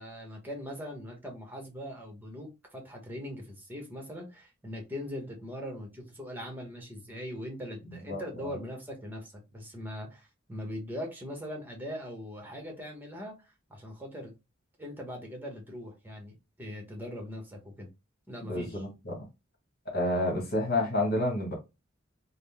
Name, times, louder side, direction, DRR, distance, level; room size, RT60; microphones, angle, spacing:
voice 1, 0.0-13.3 13.7-14.3 14.8-17.9 18.3-18.8, equal, 10° right, 1.1 m, -41 dB
voice 2, 7.9-8.5 18.4-19.2 19.9-21.5, left 1 dB, 50° left, 1.4 m, -30 dB
3.8 x 2.2 x 3.5 m
head